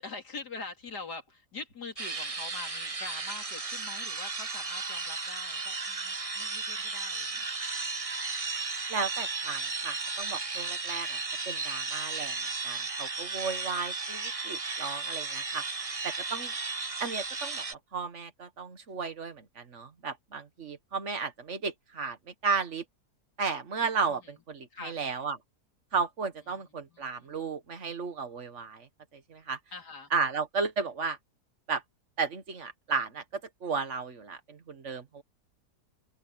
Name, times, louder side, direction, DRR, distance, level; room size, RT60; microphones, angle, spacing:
voice 1, 0.0-7.4 24.1-24.3 24.7-25.0 26.5-26.6 26.9-27.0 29.7-30.1, left 4 dB, 85° left, 3.9 m, -44 dB
sound 1, 2.0-17.7, right 3 dB, 25° right, 1.1 m, -35 dB
voice 2, 8.9-11.2 11.5-12.4 12.6-15.6 16.0-16.5 17.0-22.8 23.4-25.4 25.9-29.6 30.1-31.2 31.7-31.8 32.2-35.2, right 5 dB, 50° right, 1.8 m, -34 dB
open air
omnidirectional pair, 1.7 m